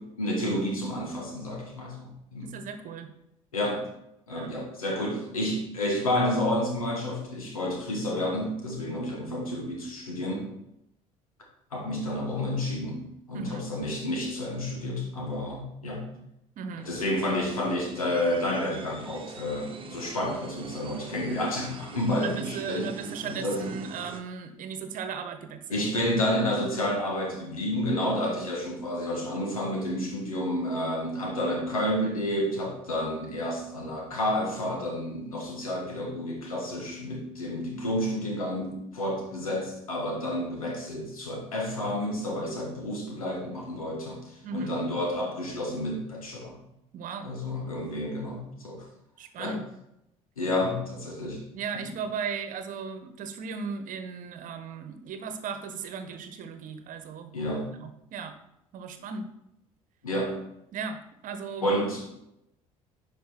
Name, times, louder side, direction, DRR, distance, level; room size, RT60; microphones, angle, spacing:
voice 1, 0.2-2.5 3.5-3.8 4.3-10.5 11.7-16.0 16.8-22.9 23.3-23.7 25.7-44.2 44.5-46.6 47.2-48.8 49.4-49.6 50.4-51.4 51.8-51.9 57.3-57.7 60.0-60.4 61.6-62.2, left 1 dB, 80° left, 1 dB, 1.8 m, -30 dB
voice 2, 2.4-3.1 4.3-4.5 13.3-13.7 16.6-16.9 22.2-25.8 44.4-44.7 46.9-47.3 49.2-49.7 51.5-57.3 57.7-58.4 58.7-59.3 60.7-61.7, right 5 dB, 50° right, 8 dB, 1.2 m, -36 dB
sound 1, 16.8-24.2, right 4 dB, 30° right, 1.2 m, -44 dB
10.5 x 5.2 x 4.6 m, 0.81 s
figure-of-eight pair, 55°, 18 cm